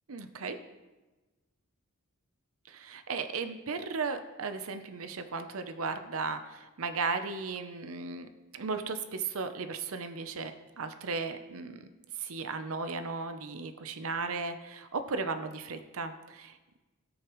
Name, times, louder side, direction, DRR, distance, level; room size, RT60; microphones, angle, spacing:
voice 1, 0.1-0.6 2.7-11.9 12.2-16.8, right 4 dB, 65° right, 9 dB, 0.7 m, -36 dB
17.0 x 6.4 x 3.1 m, 1.2 s
head